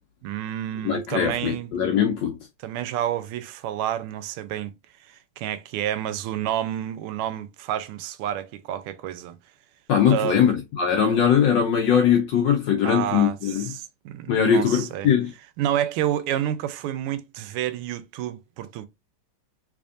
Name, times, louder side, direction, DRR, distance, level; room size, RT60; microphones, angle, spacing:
voice 1, 0.2-1.7 2.6-4.7 5.0-9.4 10.1-10.4 12.8-15.1 15.6-18.9, right 11 dB, 85° right, 1.5 m, -29 dB
voice 2, 0.8-2.4 9.9-13.7 14.3-15.3, left 8 dB, 70° left, 1.2 m, -21 dB
3.4 x 3.4 x 2.5 m
omnidirectional pair, 2.4 m